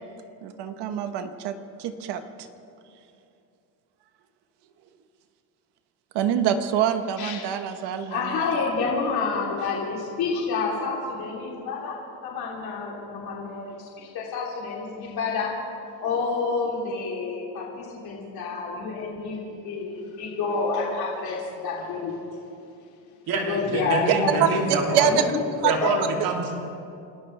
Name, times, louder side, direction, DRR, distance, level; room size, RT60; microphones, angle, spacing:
voice 1, 0.4-2.2 6.1-8.7 24.4-25.3 25.6-25.8, right 9 dB, 80° right, 8 dB, 1.2 m, -25 dB
voice 2, 8.1-11.9 12.2-15.5 16.0-22.2 23.5-25.2 25.8-25.9, left 4 dB, 65° left, -4 dB, 3.3 m, -29 dB
voice 3, 23.3-25.1 25.7-26.5, right 3 dB, 60° right, 1 dB, 2.8 m, -26 dB
30.0 x 13.5 x 3.3 m, 2.6 s
cardioid pair, 125°, 40 cm